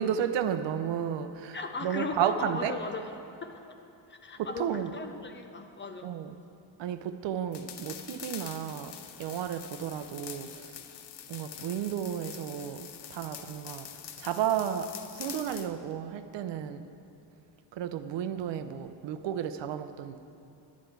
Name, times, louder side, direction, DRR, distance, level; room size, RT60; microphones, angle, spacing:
voice 1, 0.0-2.7 4.4-4.9 6.0-6.3 6.8-10.8 11.3-16.9 17.7-20.2, right 9 dB, 75° right, 10 dB, 0.6 m, -33 dB
voice 2, 1.5-3.0 3.4-3.6 4.1-6.1, left 3 dB, 25° left, 6 dB, 0.5 m, -37 dB
sound 1, 7.5-15.7, left 9 dB, 65° left, 0.7 m, -45 dB
11.5 x 9.8 x 4.6 m, 2.7 s
cardioid pair, 170°, 44 cm